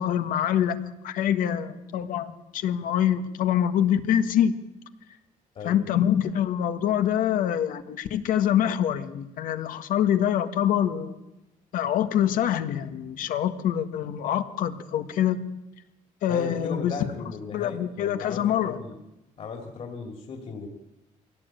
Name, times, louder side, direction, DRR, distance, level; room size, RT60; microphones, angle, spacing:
voice 1, 0.0-4.5 5.6-11.2 11.7-15.5 16.2-16.9 17.5-18.8, left 10 dB, 80° left, 9 dB, 1.6 m, -25 dB
voice 2, 16.3-19.0 19.4-20.7, left 4 dB, 45° left, 0 dB, 3.0 m, -37 dB
23.5 x 17.0 x 9.1 m, 0.95 s
cardioid pair, 150°, 14 cm